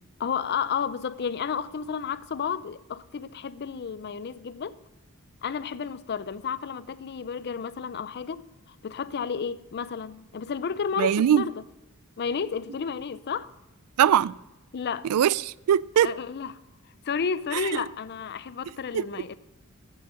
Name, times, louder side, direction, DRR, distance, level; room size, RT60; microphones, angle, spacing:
voice 1, 0.2-4.8 5.4-11.6 12.2-13.5 14.7-15.1 16.0-16.5 17.0-19.4, left 6 dB, 50° left, 0.5 m, -32 dB
voice 2, 11.0-11.4 14.0-14.3 15.1-16.1 17.5-17.6 18.9-19.0, right 9 dB, 75° right, 0.3 m, -21 dB
9.4 x 8.4 x 6.3 m
head